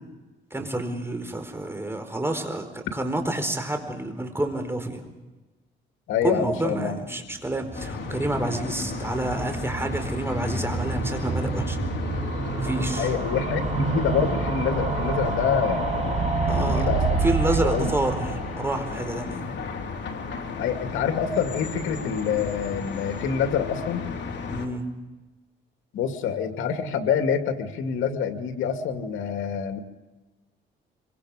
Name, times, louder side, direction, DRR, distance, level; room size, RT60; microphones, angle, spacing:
voice 1, 0.5-5.1 6.2-11.8 12.6-13.1 16.5-16.9 17.2-19.5 24.5-24.8, right 1 dB, 10° right, 6 dB, 4.6 m, -29 dB
voice 2, 6.1-7.0 13.0-16.2 16.4-17.2 17.6-17.9 20.6-24.1 25.9-29.8, left 7 dB, 85° left, 6 dB, 2.5 m, -26 dB
sound 1, 7.3-20.4 20.7-20.8 21.0-21.1 21.3-21.4, right 4 dB, 35° right, 7.4 m, -29 dB
sound 2, 7.7-24.7, left 5 dB, 65° left, 3.6 m, -34 dB
26.0 x 25.0 x 5.1 m, 1.2 s
cardioid pair, 90°, 20 cm